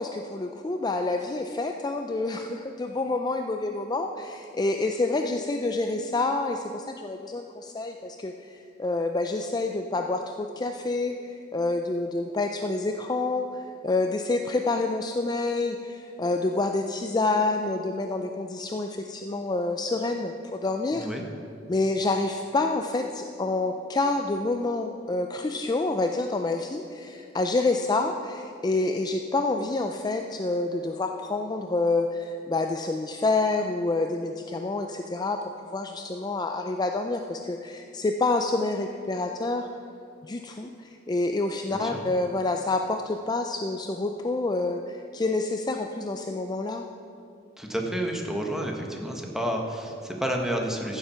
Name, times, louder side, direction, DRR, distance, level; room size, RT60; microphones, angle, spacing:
voice 1, 0.0-21.1 21.7-35.4 35.7-39.7 40.2-46.8, left 2 dB, 20° left, 4 dB, 0.4 m, -28 dB
voice 2, 20.9-21.2 41.7-42.0 47.6-51.0, equal, 5° right, 1 dB, 1.3 m, -30 dB
14.5 x 7.3 x 5.6 m, 2.6 s
head